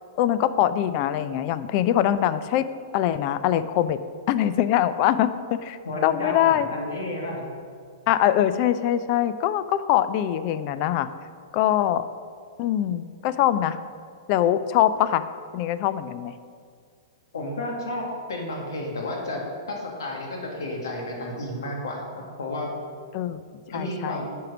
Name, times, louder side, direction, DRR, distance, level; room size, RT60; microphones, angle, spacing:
voice 1, 0.2-2.7 2.9-4.0 4.3-6.7 8.1-11.1 11.5-12.1 12.6-13.8 14.3-15.3 15.5-16.3 23.1-23.4 23.7-24.2, left 11 dB, 45° left, 13 dB, 0.5 m, -23 dB
voice 2, 5.8-7.4 12.6-13.0 17.3-19.4 19.7-22.7 23.7-24.4, left 1 dB, 75° left, -1 dB, 2.1 m, -32 dB
10.5 x 4.7 x 6.1 m, 2.1 s
hypercardioid pair, 110°, 2 cm